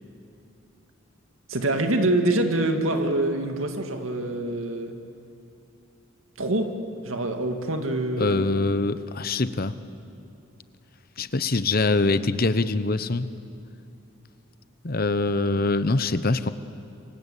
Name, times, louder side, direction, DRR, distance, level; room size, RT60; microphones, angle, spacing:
voice 1, 1.5-4.9 6.4-6.7 7.0-8.7, right 2 dB, 80° right, 5 dB, 2.2 m, -25 dB
voice 2, 8.2-9.7 11.2-13.3 14.8-16.5, left 3 dB, 45° left, 13 dB, 1.0 m, -24 dB
27.0 x 25.0 x 8.4 m, 2.7 s
head